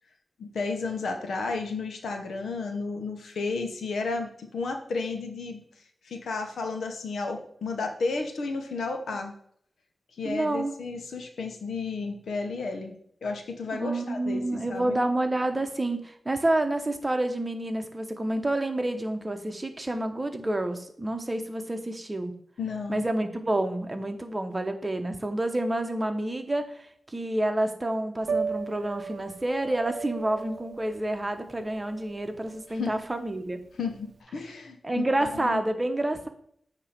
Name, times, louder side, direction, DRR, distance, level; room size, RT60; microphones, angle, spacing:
voice 1, 0.4-5.6 6.0-9.3 10.2-13.0 13.2-15.0 22.6-23.0 32.7-32.9 33.8-35.6, left 4 dB, 90° left, 4 dB, 1.1 m, -32 dB
voice 2, 10.2-10.7 13.8-22.3 22.9-33.6 34.8-36.3, right 1 dB, 25° right, 6 dB, 1.0 m, -29 dB
Piano, 28.2-34.2, right 5 dB, 70° right, 0.5 m, -36 dB
8.7 x 3.0 x 5.9 m, 0.65 s
cardioid pair, 70°, 0 cm